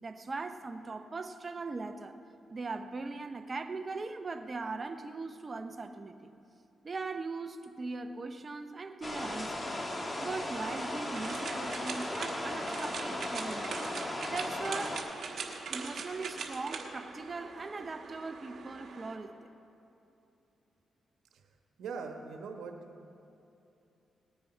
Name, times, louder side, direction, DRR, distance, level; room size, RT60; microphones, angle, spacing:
voice 1, 0.0-2.2 2.5-6.3 6.8-9.7 10.2-13.8 14.3-15.1 15.7-19.5, right 3 dB, 35° right, 7 dB, 0.7 m, -40 dB
sound 1, 9.0-15.0, left 1 dB, 30° left, 1.5 m, -37 dB
sound 2, 10.5-19.2, right 5 dB, 65° right, 1.3 m, -42 dB
voice 2, 21.8-22.7, right 5 dB, 85° right, 4 dB, 1.2 m, -41 dB
18.5 x 9.5 x 4.4 m, 2.8 s
cardioid pair, 75°, 0 cm